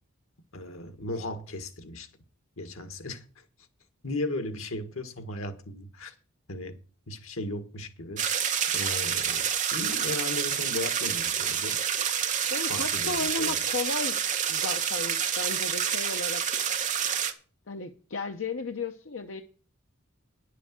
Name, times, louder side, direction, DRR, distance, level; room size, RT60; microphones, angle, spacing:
voice 1, 0.5-2.1 2.6-3.2 4.0-6.1 6.5-6.8 7.1-8.3 8.7-11.8 12.7-13.6, left 2 dB, 90° left, 1.8 m, -36 dB
sound 1, 8.2-17.3, right 8 dB, 35° right, 1.3 m, -28 dB
voice 2, 12.5-14.2 14.5-16.4 17.7-19.4, left 3 dB, 65° left, 0.8 m, -34 dB
10.5 x 6.9 x 7.5 m
head